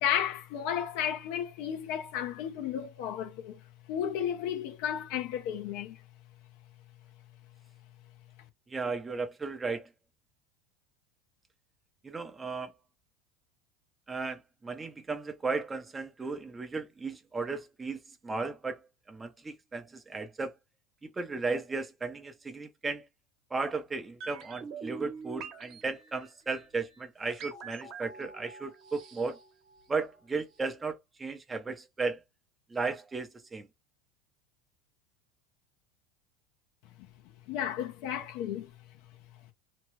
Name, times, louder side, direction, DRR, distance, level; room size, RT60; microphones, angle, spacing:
voice 1, 0.0-3.6 3.9-6.0 37.5-38.7, left 9 dB, 65° left, 0.8 m, -33 dB
voice 2, 8.7-9.9 12.0-12.7 14.1-20.5 21.0-23.1 23.5-29.4 29.9-32.2 32.7-33.7, right 4 dB, 15° right, 0.7 m, -35 dB
sound 1, 24.2-30.2 30.5-30.6, right 5 dB, 45° right, 1.1 m, -45 dB
3.0 x 2.4 x 3.2 m
supercardioid pair, 125°, 0 cm